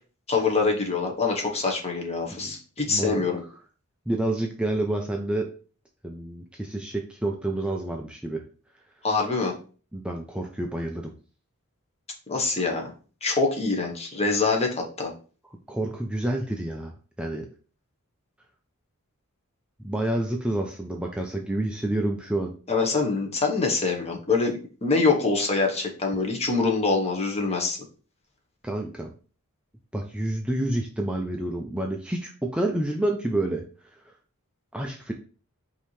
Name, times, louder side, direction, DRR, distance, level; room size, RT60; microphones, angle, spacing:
voice 1, 0.3-3.4 9.0-9.5 12.3-12.9 13.2-15.1 22.7-27.8, left 4 dB, 30° left, 1 dB, 1.0 m, -25 dB
voice 2, 2.9-3.3 4.1-5.5 6.0-8.4 9.9-11.1 15.7-16.9 17.2-17.5 19.8-22.5 28.6-29.1 29.9-34.1 34.7-35.1, right 1 dB, 5° right, 2 dB, 0.3 m, -29 dB
5.2 x 2.8 x 3.0 m, 0.38 s
head